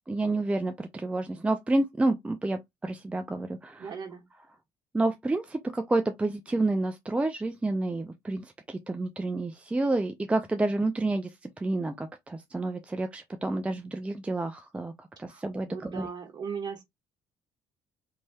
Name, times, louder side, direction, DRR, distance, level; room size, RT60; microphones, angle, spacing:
voice 1, 0.1-3.9 4.9-11.3 11.6-16.1, right 2 dB, 10° right, 0.4 m, -29 dB
voice 2, 3.8-4.2 15.3-16.8, right 6 dB, 45° right, 1.3 m, -38 dB
3.1 x 2.7 x 2.2 m
supercardioid pair, 85°, 10 cm